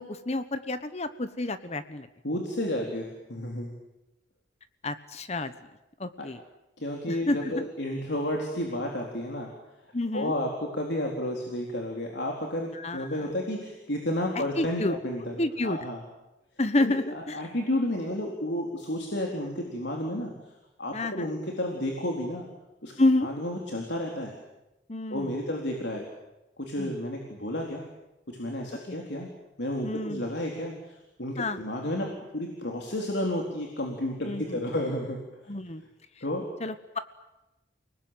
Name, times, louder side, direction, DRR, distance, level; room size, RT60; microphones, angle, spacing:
voice 1, 0.0-2.1 4.8-5.5 6.0-6.4 7.1-7.7 9.9-10.3 12.7-13.1 14.6-14.9 15.4-15.8 16.6-17.4 20.9-21.3 23.0-23.3 24.9-25.3 26.8-26.9 29.8-30.2 31.4-31.6 34.3-34.6 35.5-35.8 36.6-37.0, left 2 dB, 35° left, 11 dB, 1.2 m, -29 dB
voice 2, 2.2-3.7 6.2-6.3 6.8-9.5 10.1-15.4 15.6-16.0 16.8-20.3 20.8-22.5 22.8-22.9 23.2-24.3 25.1-26.1 26.6-27.8 28.3-29.3 29.6-35.2 36.2-36.4, left 1 dB, 65° left, 1 dB, 4.0 m, -31 dB
30.0 x 20.0 x 9.0 m, 0.96 s
head